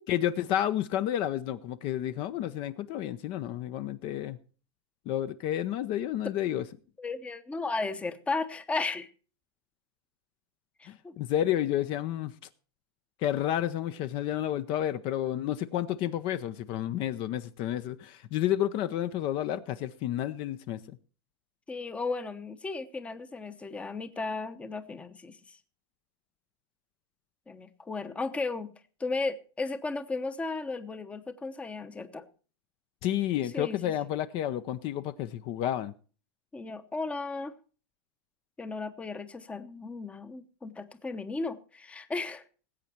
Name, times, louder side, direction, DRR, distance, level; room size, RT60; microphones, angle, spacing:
voice 1, 0.1-4.4 5.1-6.6 10.9-12.3 13.2-21.0 33.0-35.9, left 11 dB, 35° left, 0.7 m, -30 dB
voice 2, 7.0-9.1 10.8-11.2 21.7-25.6 27.5-28.7 29.0-32.3 33.5-33.9 36.5-37.5 38.6-42.4, left 3 dB, 10° left, 0.9 m, -35 dB
19.0 x 8.4 x 4.5 m
supercardioid pair, 150°, 14 cm